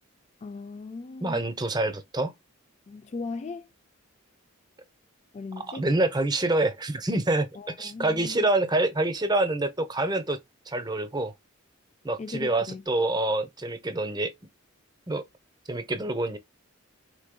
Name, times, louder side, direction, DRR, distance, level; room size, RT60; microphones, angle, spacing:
voice 1, 0.4-1.4 2.9-3.7 5.3-5.9 7.6-8.5 12.2-12.8, left 4 dB, 30° left, 0.3 m, -38 dB
voice 2, 1.2-2.3 5.6-10.4 10.7-11.3 12.0-14.3 15.1-15.2 15.7-16.4, right 2 dB, 20° right, 0.7 m, -26 dB
4.9 x 3.6 x 2.2 m
head